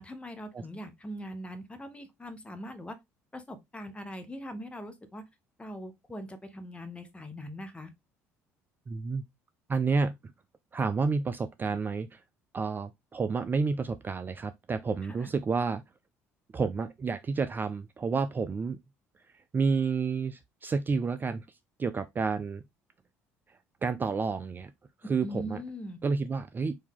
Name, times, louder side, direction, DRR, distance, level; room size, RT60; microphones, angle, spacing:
voice 1, 0.0-3.0 3.3-5.2 5.6-7.9 15.2-15.3 25.2-26.0, equal, 15° left, 1.1 m, -41 dB
voice 2, 8.9-9.2 9.7-10.1 10.7-12.2 12.5-15.8 16.5-18.8 19.3-22.6 23.5-24.7 25.1-25.6 26.0-26.8, right 4 dB, 25° right, 0.3 m, -30 dB
4.6 x 2.7 x 3.6 m
figure-of-eight pair, 55°, 8 cm